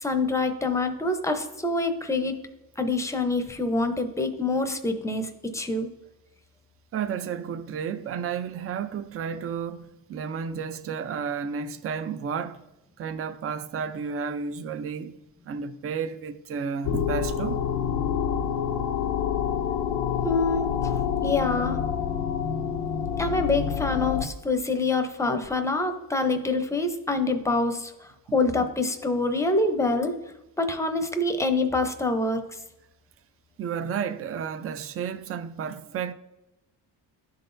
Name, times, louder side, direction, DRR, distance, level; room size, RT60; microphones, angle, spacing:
voice 1, 0.0-2.4 2.8-5.9 20.2-20.7 21.2-21.8 23.2-27.9 28.3-30.1 30.6-32.4, left 3 dB, 5° left, 0.6 m, -26 dB
voice 2, 6.9-12.6 13.0-15.2 15.5-17.6 28.3-28.4 33.6-36.1, right 6 dB, 35° right, 0.4 m, -32 dB
sound 1, 16.8-24.3, left 8 dB, 85° left, 0.6 m, -27 dB
12.0 x 4.0 x 2.6 m
cardioid pair, 95°, 42 cm